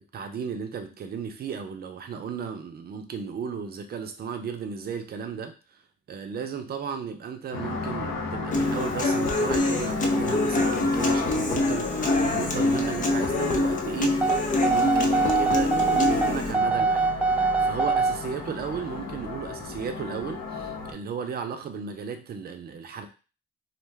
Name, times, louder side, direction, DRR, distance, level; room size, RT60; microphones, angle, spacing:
voice 1, 0.1-5.8 6.1-23.1, right 6 dB, 50° right, 0.6 m, -35 dB
sound 1, 7.5-20.9, left 3 dB, 80° left, 0.7 m, -34 dB
Human voice / Acoustic guitar, 8.5-16.5, left 2 dB, 40° left, 0.6 m, -25 dB
sound 2, 14.2-18.2, right 4 dB, 5° right, 0.4 m, -23 dB
2.4 x 2.2 x 3.2 m
cardioid pair, 90°, 20 cm